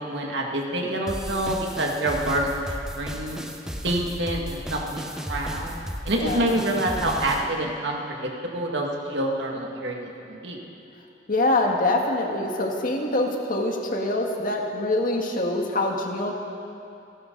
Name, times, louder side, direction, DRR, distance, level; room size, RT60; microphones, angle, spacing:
voice 1, 0.0-2.7 3.0-3.4 3.8-5.8 6.1-10.6, right 1 dB, 70° right, 0 dB, 2.2 m, -27 dB
sound 1, 1.1-7.5, equal, 5° right, 1.0 m, -34 dB
voice 2, 6.1-6.6 11.3-16.3, left 2 dB, 50° left, 1 dB, 1.8 m, -25 dB
28.5 x 12.0 x 4.0 m, 2.6 s
head